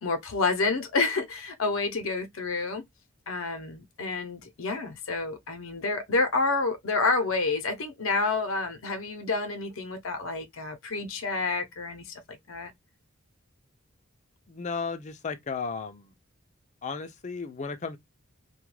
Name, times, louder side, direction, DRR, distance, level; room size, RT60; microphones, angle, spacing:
voice 1, 0.0-2.8 3.3-12.7, left 3 dB, 75° left, 0.6 m, -29 dB
voice 2, 14.5-16.1 16.8-18.0, left 5 dB, 35° left, 0.4 m, -34 dB
2.2 x 2.2 x 3.1 m
head